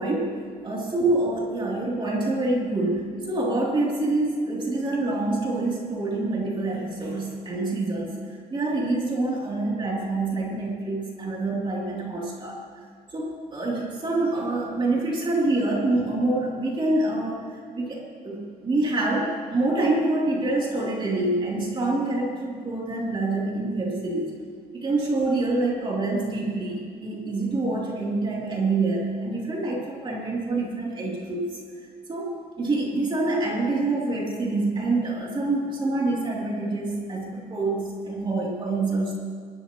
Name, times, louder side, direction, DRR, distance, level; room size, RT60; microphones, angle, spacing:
voice 1, 0.0-8.1 8.5-12.6 13.1-24.4 24.7-31.6 32.1-39.1, right 2 dB, 30° right, -4 dB, 3.0 m, -26 dB
24.0 x 12.0 x 3.0 m, 2.1 s
wide cardioid pair, 160°, 16 cm